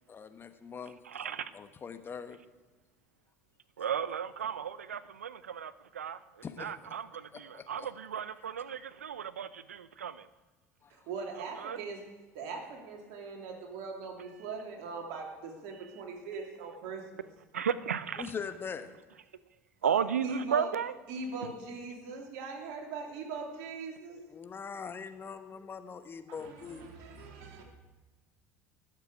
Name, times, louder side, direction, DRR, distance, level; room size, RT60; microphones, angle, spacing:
voice 1, 0.1-2.4 6.4-6.7 7.3-7.9 10.8-11.1 18.2-18.9 24.3-26.9, left 6 dB, 30° left, 9 dB, 1.2 m, -42 dB
voice 2, 1.0-1.5 3.8-10.3 11.4-11.8 15.7-16.0 17.5-18.3 19.8-21.0 21.4-21.5, right 8 dB, 85° right, 17 dB, 0.5 m, -35 dB
voice 3, 10.9-12.0 12.3-17.3 19.8-20.7 21.1-24.2 26.3-27.6, right 4 dB, 60° right, 1 dB, 3.0 m, -41 dB
20.0 x 7.5 x 4.8 m, 1.2 s
hypercardioid pair, 70°, 8 cm